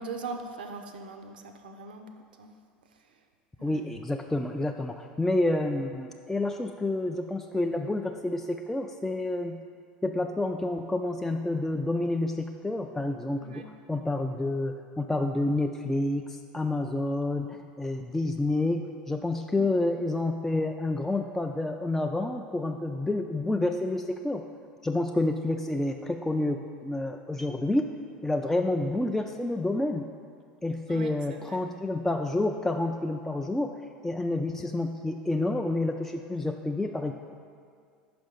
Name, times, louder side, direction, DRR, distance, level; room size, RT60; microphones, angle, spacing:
voice 1, 0.0-2.5 3.6-3.8 13.4-13.7 19.6-19.7 30.9-31.6, right 3 dB, 80° right, 6 dB, 0.5 m, -41 dB
voice 2, 3.6-9.6 10.0-24.4 24.8-27.9 28.2-30.1 30.6-33.7 34.0-37.1, left 2 dB, 5° left, 3 dB, 0.3 m, -29 dB
5.5 x 5.1 x 5.2 m, 2.2 s
hypercardioid pair, 80°, 5 cm